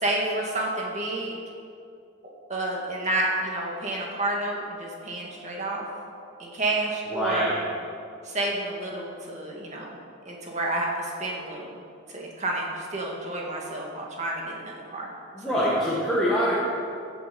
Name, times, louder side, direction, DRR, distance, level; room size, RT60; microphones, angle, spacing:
voice 1, 0.0-1.4 2.5-5.9 6.4-7.5 8.2-9.9 10.3-11.7 12.1-15.1 15.4-15.6, right 2 dB, 35° right, -2 dB, 2.2 m, -30 dB
voice 2, 7.1-7.6 15.3-16.6, equal, ahead, -9 dB, 1.9 m, -24 dB
16.0 x 8.1 x 5.5 m, 2.5 s
head